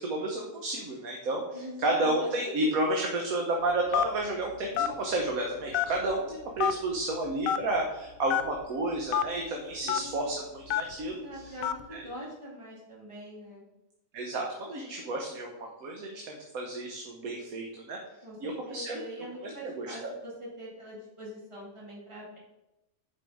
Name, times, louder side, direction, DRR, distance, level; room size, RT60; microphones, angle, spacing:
voice 1, 0.0-11.4 11.9-12.1 14.1-18.0 18.4-19.0 19.4-20.1, right 2 dB, 85° right, 0 dB, 1.5 m, -31 dB
voice 2, 1.5-2.1 9.8-10.3 11.0-13.7 18.2-22.4, equal, 20° right, -4 dB, 2.1 m, -43 dB
Telephone, 3.9-4.2 4.8-4.9 5.7-6.1 6.6-6.7 7.4-7.6 8.3-8.4 9.1-9.2 9.9-10.0 10.7-10.9 11.6-11.8, left 9 dB, 80° left, 1.0 m, -26 dB
7.4 x 5.1 x 4.8 m, 0.94 s
omnidirectional pair, 1.4 m